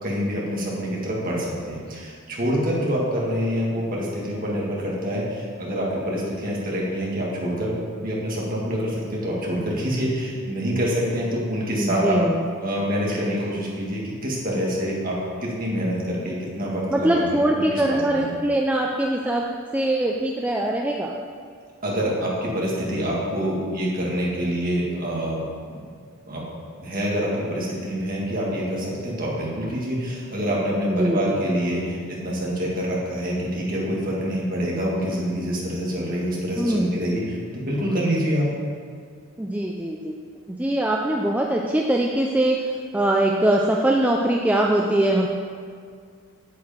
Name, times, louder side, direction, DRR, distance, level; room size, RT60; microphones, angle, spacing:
voice 1, 0.0-12.2 12.6-17.2 17.7-18.3 21.8-25.8 26.3-26.4 26.8-38.5, equal, 40° right, -4 dB, 2.1 m, -26 dB
voice 2, 11.8-12.5 16.9-19.5 19.7-21.1 30.8-31.4 36.6-36.9 39.4-40.1 40.5-42.6 42.9-45.3, right 1 dB, 5° right, -1 dB, 0.4 m, -22 dB
8.4 x 7.9 x 4.4 m, 2.1 s
head